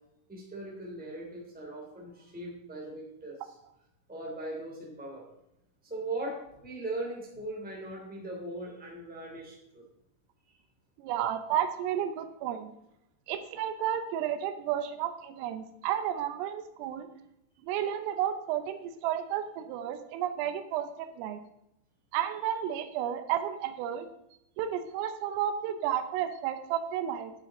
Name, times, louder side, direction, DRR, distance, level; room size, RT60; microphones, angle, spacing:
voice 1, 0.3-3.4 4.1-5.3 5.8-9.8, right 2 dB, 5° right, -2 dB, 1.0 m, -39 dB
voice 2, 11.0-12.7 13.3-17.1 17.6-21.4 22.1-24.1 24.6-27.3, right 10 dB, 80° right, 9 dB, 3.3 m, -32 dB
11.0 x 8.7 x 3.7 m, 0.83 s
omnidirectional pair, 5.9 m